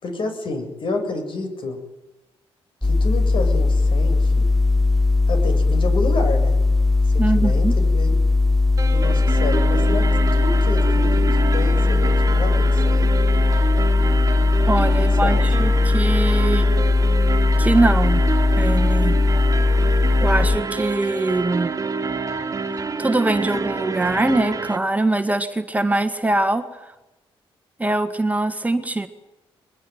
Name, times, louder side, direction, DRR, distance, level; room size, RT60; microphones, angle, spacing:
voice 1, 0.0-1.8 2.8-4.5 5.3-6.5 7.0-8.1 8.9-10.0 10.3-13.1 15.2-15.4, left 3 dB, 55° left, 6 dB, 7.4 m, -29 dB
sound 1, 2.8-20.6, left 3 dB, ahead, 1.3 m, -18 dB
voice 2, 7.2-7.8 14.7-16.7 17.6-18.2 18.6-19.2 20.2-21.7 22.8-26.9 27.8-29.1, right 2 dB, 15° right, 7 dB, 1.8 m, -22 dB
sound 2, 8.8-24.8, right 4 dB, 35° right, 2.1 m, -27 dB
22.5 x 21.5 x 9.4 m, 0.98 s
cardioid pair, 105°, 10 cm